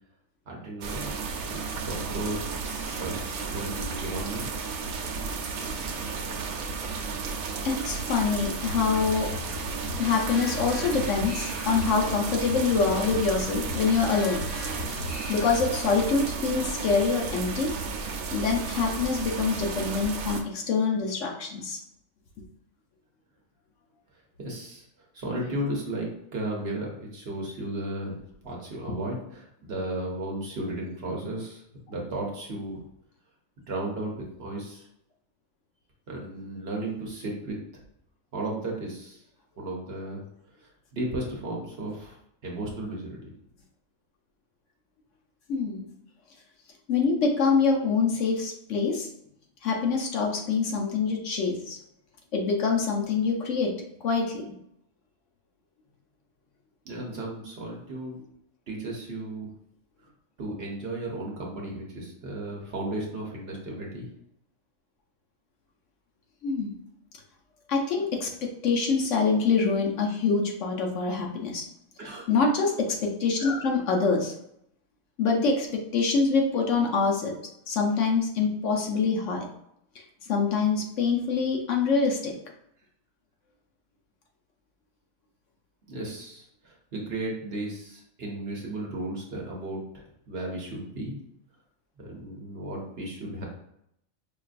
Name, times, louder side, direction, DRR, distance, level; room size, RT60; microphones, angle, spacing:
voice 1, 0.5-1.1 1.6-2.4 3.0-3.2 3.5-4.5 24.4-24.9 25.1-31.6 31.9-32.8 33.7-34.9 36.1-37.6 38.3-39.2 39.6-40.2 40.6-42.2 42.4-43.3 56.8-58.2 58.7-59.5 60.4-64.0 72.0-72.3 85.9-91.2 92.0-93.5, right 1 dB, 55° right, -1 dB, 0.9 m, -34 dB
sound 1, 0.8-20.4, right 5 dB, 85° right, 1.0 m, -33 dB
voice 2, 7.6-9.3 10.0-14.4 15.3-17.7 18.3-21.8 45.5-45.9 46.9-49.1 49.6-51.8 52.3-53.7 54.0-54.5 66.4-66.7 67.7-71.7 72.3-74.3 75.2-75.7 75.9-77.3 77.7-79.5 80.3-82.3, left 4 dB, 65° left, 0 dB, 1.0 m, -25 dB
sound 2, 8.6-16.3, left 4 dB, 80° left, 1.7 m, -39 dB
5.1 x 2.5 x 2.4 m, 0.75 s
omnidirectional pair, 1.4 m